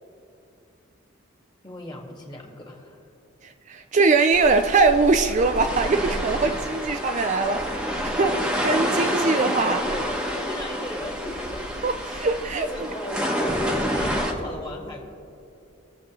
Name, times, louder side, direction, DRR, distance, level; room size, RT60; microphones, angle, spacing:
voice 1, 1.6-3.0 9.7-11.7 12.7-15.0, left 1 dB, 20° left, -1 dB, 1.8 m, -36 dB
voice 2, 3.4-9.8 11.8-12.7, right 3 dB, 35° right, 7 dB, 0.4 m, -22 dB
sound 1, 4.3-14.3, equal, 5° right, 1.0 m, -28 dB
23.0 x 7.7 x 3.1 m, 2.7 s
head